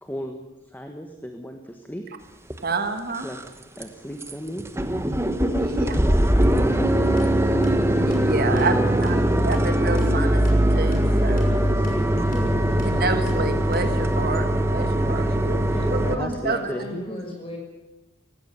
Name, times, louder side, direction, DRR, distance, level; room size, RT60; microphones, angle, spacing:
voice 1, 0.0-2.0 3.2-4.6 6.5-7.6 8.8-9.0 11.4-13.1 14.9-15.7 16.2-17.3, equal, 10° left, 5 dB, 1.5 m, -36 dB
sound 1, 2.5-2.6 3.1-3.5 3.8-3.9 4.2-4.3 4.6-16.1, right 1 dB, 15° right, 1.3 m, -21 dB
voice 2, 2.6-3.3 5.5-6.0 8.0-11.5 12.8-15.6 15.9-16.6, right 3 dB, 50° right, 8 dB, 1.7 m, -28 dB
sound 2, 6.7-14.2, left 1 dB, 45° left, 5.9 m, -39 dB
voice 3, 15.7-17.6, left 1 dB, 25° left, 1 dB, 5.8 m, -36 dB
18.0 x 16.5 x 9.9 m, 1.0 s
head